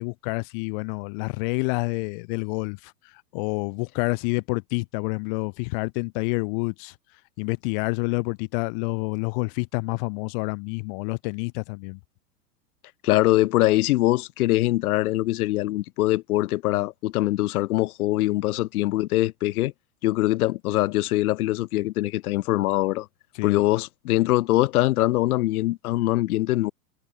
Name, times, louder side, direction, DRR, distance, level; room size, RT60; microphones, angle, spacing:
voice 1, 0.0-7.0 7.4-12.0 23.3-23.6, left 33 dB, 35° left, 0.4 m, -28 dB
voice 2, 13.0-19.7 20.0-23.1 23.4-26.7, left 17 dB, 60° left, 1.2 m, -23 dB
hypercardioid pair, 100°, 49 cm